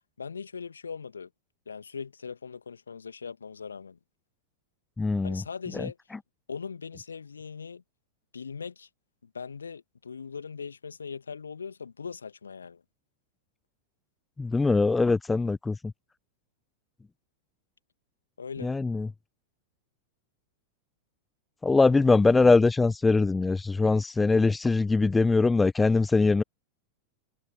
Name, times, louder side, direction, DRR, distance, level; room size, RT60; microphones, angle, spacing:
voice 1, 0.2-1.3 1.7-4.0 5.2-6.0 6.5-7.8 8.3-8.9 9.2-12.8 18.4-18.7, left 6 dB, 75° left, 2.2 m, -40 dB
voice 2, 5.0-5.4 5.7-5.9 14.4-15.8 18.6-19.1 21.6-26.4, left 3 dB, 10° left, 0.8 m, -22 dB
figure-of-eight pair, 90°, 0 cm